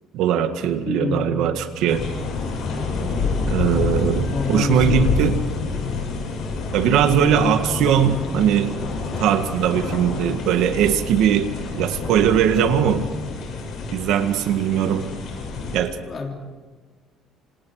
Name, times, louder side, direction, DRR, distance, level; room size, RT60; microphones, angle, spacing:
voice 1, 0.1-2.1 3.4-5.4 6.7-8.7 9.2-13.1 13.9-15.0 15.7-16.0, right 9 dB, 70° right, 8 dB, 1.9 m, -20 dB
voice 2, 0.8-1.5 4.3-5.4 16.0-16.3, left 3 dB, 30° left, 2 dB, 3.5 m, -26 dB
sound 1, 1.9-15.8, left 4 dB, 50° left, 7.1 m, -27 dB
27.5 x 27.0 x 4.9 m, 1.3 s
cardioid pair, 165°, 0 cm